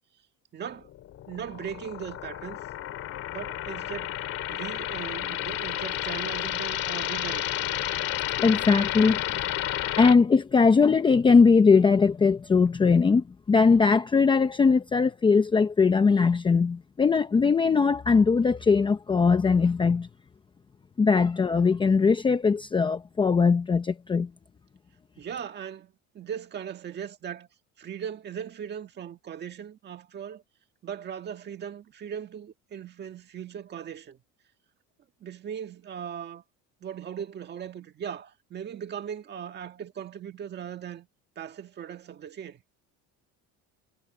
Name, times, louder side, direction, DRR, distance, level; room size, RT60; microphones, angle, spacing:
voice 1, 0.5-0.9 1.3-2.6 3.3-4.2 4.5-7.8 25.2-27.5 27.8-30.4 30.8-34.2 35.2-36.4 36.8-41.1 41.3-42.6, right 8 dB, 30° right, 1.7 m, -38 dB
sound 1, 0.9-10.1, left 12 dB, 45° left, 2.4 m, -31 dB
voice 2, 8.4-9.2 10.0-20.1 21.0-24.3, left 5 dB, 15° left, 0.7 m, -20 dB
cardioid pair, 165°, 32 cm